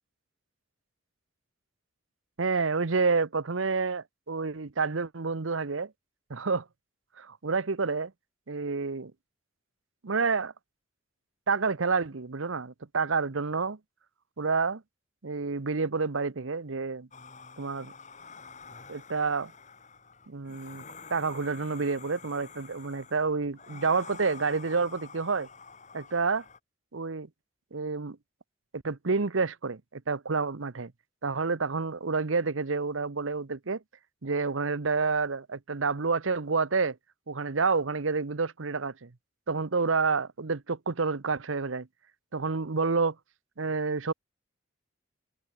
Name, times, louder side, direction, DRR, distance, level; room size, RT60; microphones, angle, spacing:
voice 1, 2.4-5.9 6.3-6.6 7.2-8.1 8.5-9.1 10.0-10.5 11.5-13.8 14.4-14.8 15.2-17.1 17.6-17.9 18.9-19.5 20.3-20.8 21.1-25.5 25.9-26.4 26.9-27.3 27.7-28.2 28.8-30.9 31.2-33.8 34.2-37.0 37.3-39.1 39.5-41.9 42.3-43.2 43.6-44.1, right 4 dB, 85° right, 0.9 m, -29 dB
sound 1, 17.1-26.6, left 5 dB, 35° left, 5.0 m, -48 dB
head